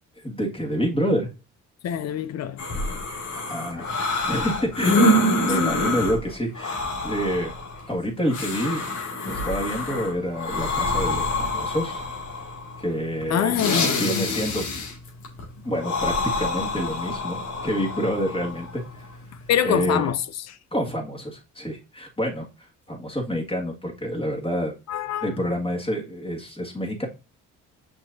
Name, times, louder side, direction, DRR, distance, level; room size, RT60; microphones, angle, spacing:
voice 1, 0.2-1.3 3.3-3.9 4.3-7.5 7.9-8.8 9.3-12.1 12.8-13.5 14.0-14.6 15.6-18.8 19.6-20.1 20.7-22.5 22.9-24.7 25.2-27.1, equal, 20° left, 1.9 m, -27 dB
voice 2, 1.8-2.6 5.6-5.8 13.3-14.0 19.5-20.2 20.5-20.6 24.9-25.3, left 9 dB, 60° left, 0.6 m, -24 dB
sound 1, 2.6-19.6, left 1 dB, 80° left, 2.2 m, -27 dB
6.1 x 5.8 x 2.6 m
cardioid pair, 90°, 30 cm